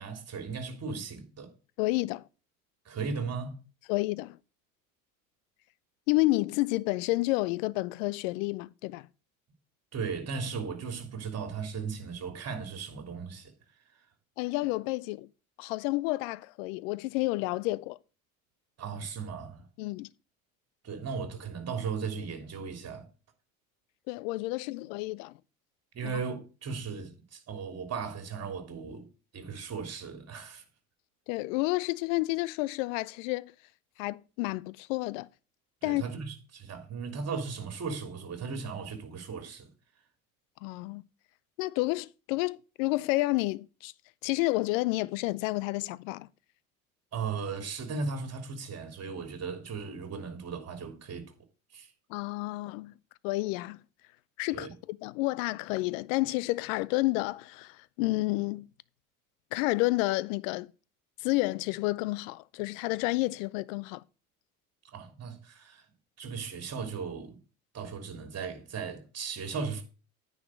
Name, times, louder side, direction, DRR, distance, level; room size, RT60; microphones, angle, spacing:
voice 1, 0.0-1.5 2.8-3.5 9.9-13.5 18.8-19.7 20.8-23.1 25.9-29.1 29.3-30.6 35.8-39.7 47.1-51.3 51.7-51.9 54.5-54.7 64.9-65.8 66.2-67.4 67.7-69.8, right 5 dB, 35° right, 3.2 m, -37 dB
voice 2, 1.8-2.2 3.9-4.4 6.1-9.1 14.4-15.3 15.6-18.0 19.8-20.1 24.1-25.3 26.0-26.1 31.3-33.5 34.0-35.3 35.8-36.0 40.6-41.0 41.6-43.9 44.2-46.3 52.1-52.9 53.2-53.8 54.4-58.7 59.5-60.7 61.2-64.0, left 21 dB, 60° left, 0.6 m, -30 dB
9.7 x 5.1 x 6.4 m
hypercardioid pair, 70°, 43 cm